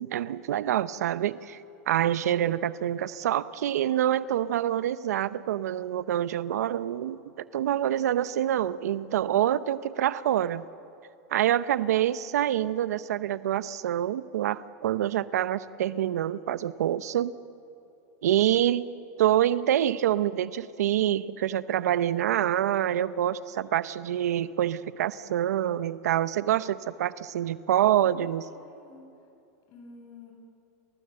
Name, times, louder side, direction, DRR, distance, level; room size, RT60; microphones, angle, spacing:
voice 1, 0.0-1.6 1.9-10.6 11.3-17.3 18.2-18.9 19.2-28.4, right 11 dB, 90° right, 16 dB, 0.7 m, -26 dB
voice 2, 28.0-29.1 29.7-30.3, left 3 dB, 50° left, 2 dB, 7.8 m, -50 dB
29.5 x 19.5 x 7.8 m, 2.7 s
supercardioid pair, 115°, 8 cm